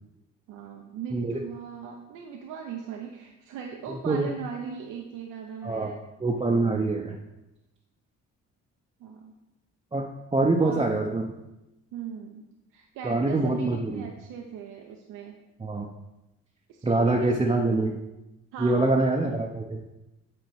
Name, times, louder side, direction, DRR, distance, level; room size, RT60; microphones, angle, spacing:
voice 1, 0.5-6.0 9.0-9.3 10.6-11.1 11.9-12.5 12.7-15.4 16.7-17.9 18.5-19.5, right 7 dB, 85° right, 2 dB, 0.7 m, -39 dB
voice 2, 3.9-4.3 5.6-5.9 6.2-7.2 9.9-11.3 13.0-14.0 15.6-15.9 16.8-18.0 18.6-19.8, right 2 dB, 15° right, -1 dB, 0.6 m, -25 dB
8.0 x 3.8 x 4.6 m, 0.96 s
cardioid pair, 90°, 30 cm